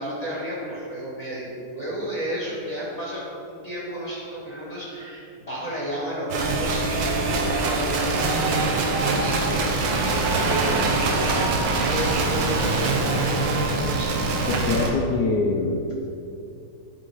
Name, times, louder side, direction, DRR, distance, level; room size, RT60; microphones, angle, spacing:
voice 1, 0.0-14.5, equal, 20° left, -6 dB, 1.5 m, -32 dB
sound 1, 6.3-14.9, right 3 dB, 65° right, 1.4 m, -23 dB
voice 2, 14.5-16.1, left 3 dB, 70° left, 0 dB, 1.0 m, -24 dB
10.5 x 3.8 x 4.8 m, 2.6 s
omnidirectional pair, 2.4 m